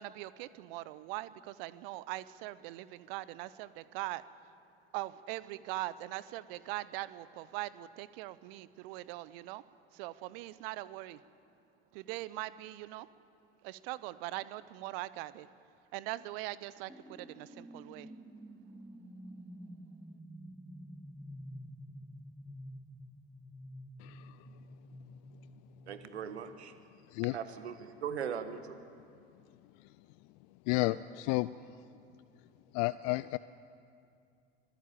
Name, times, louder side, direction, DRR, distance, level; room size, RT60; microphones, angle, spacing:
voice 1, 0.0-4.2 4.9-9.6 9.9-11.2 11.9-13.1 13.6-15.5 15.9-18.1, right 17 dB, 60° right, 17 dB, 0.8 m, -41 dB
sound 1, 16.9-27.2, equal, ahead, 1.5 m, -50 dB
voice 2, 24.0-24.4 27.1-27.4 30.7-31.5 32.7-33.4, left 21 dB, 55° left, 17 dB, 0.5 m, -31 dB
voice 3, 25.9-26.7 27.3-28.8, right 7 dB, 80° right, 10 dB, 1.5 m, -39 dB
25.0 x 16.5 x 8.6 m, 2.4 s
figure-of-eight pair, 65°, 33 cm